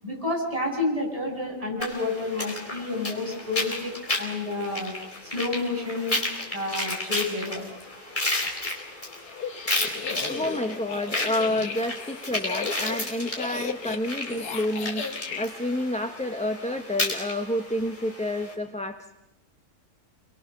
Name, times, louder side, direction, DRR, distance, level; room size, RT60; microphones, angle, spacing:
voice 1, 0.0-3.9 4.2-4.9 5.3-6.2 6.5-7.6, left 2 dB, 20° right, -1 dB, 7.4 m, -29 dB
sound 1, 1.8-18.5, left 2 dB, 30° left, 4.5 m, -33 dB
sound 2, 9.3-15.5, left 6 dB, 80° left, 1.9 m, -35 dB
voice 2, 10.3-19.1, left 1 dB, 5° left, 6 dB, 0.9 m, -29 dB
28.5 x 23.5 x 6.7 m, 0.81 s
omnidirectional pair, 1.6 m